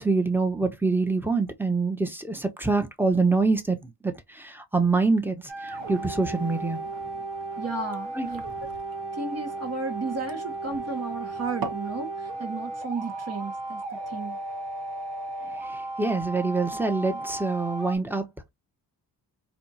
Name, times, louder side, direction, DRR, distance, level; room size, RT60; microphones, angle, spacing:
voice 1, 0.0-6.8 8.1-8.3 16.0-18.2, right 3 dB, 5° right, 1.1 m, -25 dB
sound 1, 5.4-11.9, right 5 dB, 55° right, 1.1 m, -43 dB
sound 2, 5.5-18.0, right 2 dB, 75° right, 1.2 m, -35 dB
voice 2, 7.6-8.5 9.1-13.8 14.1-14.4, right 3 dB, 35° right, 1.3 m, -33 dB
4.3 x 2.4 x 2.8 m
supercardioid pair, 55°, 43 cm